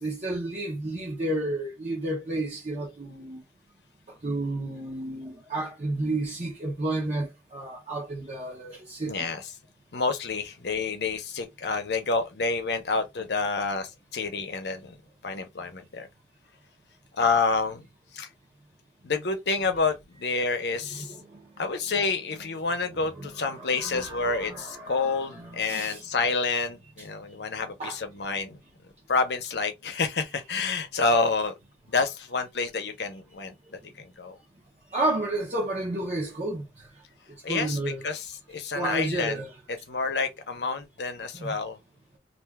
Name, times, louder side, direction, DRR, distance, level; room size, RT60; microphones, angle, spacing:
voice 1, 0.0-3.4 4.2-9.3 20.3-20.4 20.9-21.4 22.4-22.5 22.9-26.0 27.0-27.1 27.8-28.0 34.9-36.9 37.5-38.1 38.7-39.6 41.3-41.6, right 2 dB, 40° right, 0.7 m, -32 dB
voice 2, 9.1-9.4 9.9-14.9 15.2-16.1 17.2-17.9 18.1-18.3 19.0-21.1 21.6-28.6 29.1-31.5 31.9-33.5 34.2-34.4 37.4-37.8 38.0-39.4 39.9-41.8, left 4 dB, 70° left, 0.7 m, -28 dB
2.5 x 2.3 x 3.4 m
head